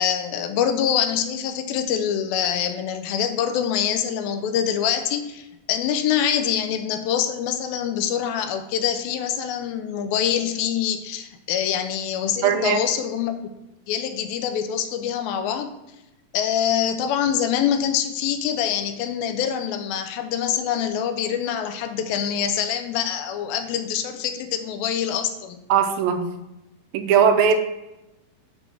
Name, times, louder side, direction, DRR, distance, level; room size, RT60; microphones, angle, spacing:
voice 1, 0.0-13.5 13.9-15.7 16.3-25.6, left 9 dB, 85° left, 8 dB, 2.4 m, -25 dB
voice 2, 12.4-12.8 25.7-26.3 26.9-27.5, right 7 dB, 85° right, 6 dB, 2.5 m, -19 dB
7.1 x 3.4 x 6.0 m, 0.94 s
omnidirectional pair, 4.1 m